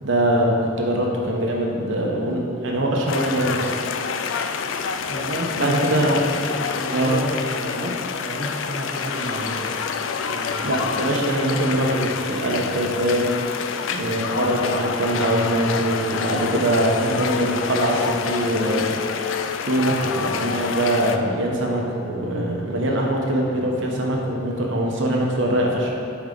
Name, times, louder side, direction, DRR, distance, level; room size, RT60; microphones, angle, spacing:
voice 1, 0.0-3.7 5.5-6.3 6.9-7.2 10.6-13.3 13.9-18.9 19.7-25.9, right 1 dB, 80° right, -1 dB, 1.0 m, -22 dB
sound 1, 3.1-21.2, left 6 dB, 85° left, 0.4 m, -27 dB
voice 2, 5.1-9.7 10.3-11.0, right 1 dB, 55° right, -4 dB, 0.7 m, -31 dB
8.8 x 3.6 x 5.2 m, 2.8 s
head